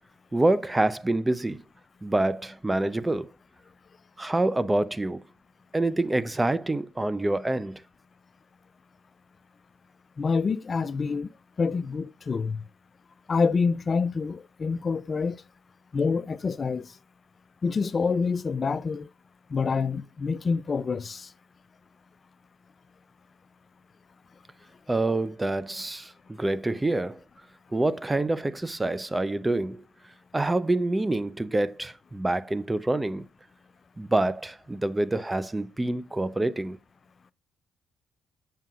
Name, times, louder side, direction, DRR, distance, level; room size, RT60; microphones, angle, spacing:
voice 1, 0.3-1.6 2.0-3.3 4.2-5.2 5.7-7.8 24.9-27.2 27.7-29.8 30.3-33.2 34.0-36.8, right 2 dB, 15° right, 0.5 m, -26 dB
voice 2, 10.2-11.3 11.6-12.6 13.3-15.4 15.9-16.9 17.6-19.1 19.5-21.3, left 5 dB, 40° left, 0.4 m, -27 dB
7.5 x 6.6 x 2.4 m
cardioid pair, 90°, 0 cm